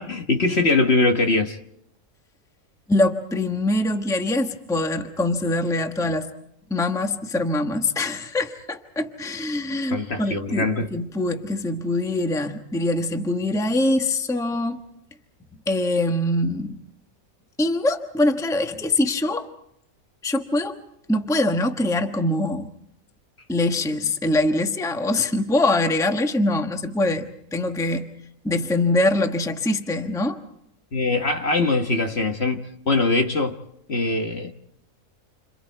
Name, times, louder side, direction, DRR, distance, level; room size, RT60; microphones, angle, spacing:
voice 1, 0.0-1.6 9.9-10.9 30.9-33.6 33.9-34.5, left 3 dB, 45° left, 1.5 m, -22 dB
voice 2, 2.9-6.3 6.7-14.8 15.7-16.8 17.6-19.5 20.2-20.8 21.1-22.7 23.5-28.0 28.4-30.4, left 2 dB, ahead, 1.1 m, -23 dB
29.0 x 27.0 x 4.6 m
omnidirectional pair, 1.5 m